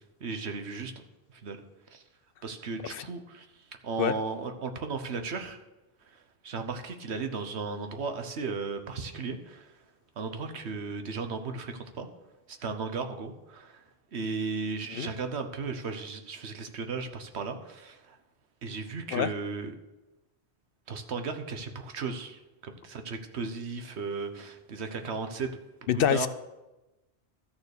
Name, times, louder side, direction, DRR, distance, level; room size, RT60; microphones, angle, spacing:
voice 1, 0.2-0.9 1.3-1.6 1.9-2.0 2.4-3.5 3.8-5.6 6.1-9.7 10.2-12.1 12.5-13.8 14.1-18.2 18.6-19.7 20.9-25.6 25.9-26.3, right 4 dB, 85° right, 7 dB, 1.3 m, -35 dB
voice 2, 25.9-26.3, left 9 dB, 65° left, 14 dB, 0.7 m, -25 dB
13.0 x 6.7 x 6.6 m, 1.0 s
omnidirectional pair, 1.1 m